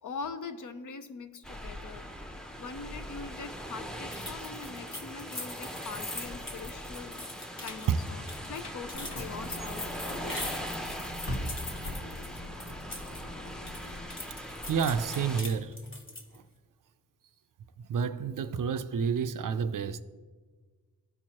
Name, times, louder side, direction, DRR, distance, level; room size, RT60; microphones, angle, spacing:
voice 1, 0.0-2.3 2.5-7.2 7.6-9.9 10.2-10.5, left 4 dB, 55° left, 0.6 m, -42 dB
sound 1, 1.4-15.4, equal, ahead, 0.6 m, -41 dB
sound 2, 4.1-13.2 13.5-16.4, left 2 dB, 35° left, 1.2 m, -42 dB
Bus / Engine, 8.9-14.1, left 1 dB, 70° left, 1.4 m, -40 dB
voice 2, 14.7-15.8 16.3-16.4 17.8-20.0, right 6 dB, 60° right, 0.5 m, -29 dB
13.5 x 4.5 x 2.9 m
wide cardioid pair, 80°, 37 cm